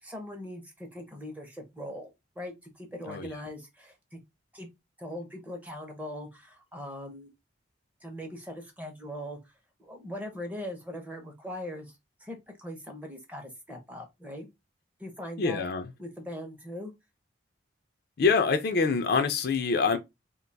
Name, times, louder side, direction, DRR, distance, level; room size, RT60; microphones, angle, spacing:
voice 1, 0.0-4.2 4.5-4.7 5.0-7.3 8.0-9.5 9.8-14.5 15.0-15.7 16.0-16.9, equal, 10° right, 0.7 m, -41 dB
voice 2, 15.4-15.9 18.2-20.0, left 4 dB, 55° left, 0.4 m, -25 dB
2.5 x 2.2 x 3.8 m
head